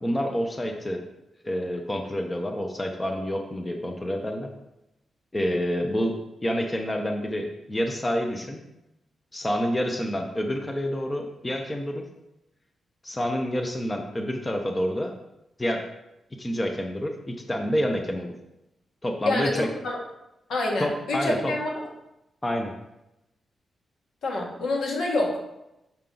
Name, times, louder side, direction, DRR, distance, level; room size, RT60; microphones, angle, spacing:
voice 1, 0.0-1.0 1.4-4.5 5.3-6.2 6.4-8.6 9.3-12.1 13.0-15.1 15.6-15.9 16.4-18.3 19.0-19.7 20.8-21.5 22.4-22.7, equal, 15° left, 3 dB, 0.5 m, -28 dB
voice 2, 19.2-20.0 20.5-21.8 24.2-25.4, left 2 dB, 75° left, -1 dB, 1.4 m, -27 dB
5.7 x 5.3 x 3.8 m, 0.90 s
wide cardioid pair, 170°, 0 cm